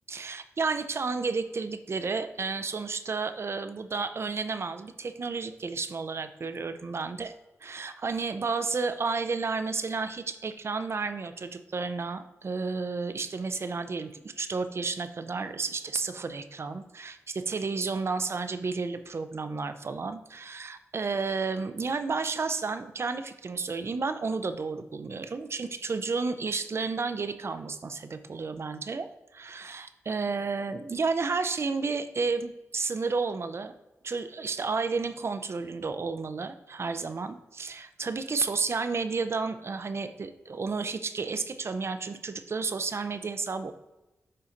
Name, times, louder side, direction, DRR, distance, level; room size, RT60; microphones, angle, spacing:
voice 1, 0.1-7.3 7.6-33.7 34.0-43.7, right 4 dB, 50° right, 10 dB, 0.6 m, -32 dB
11.0 x 4.1 x 2.6 m, 1.0 s
cardioid pair, 50°, 6 cm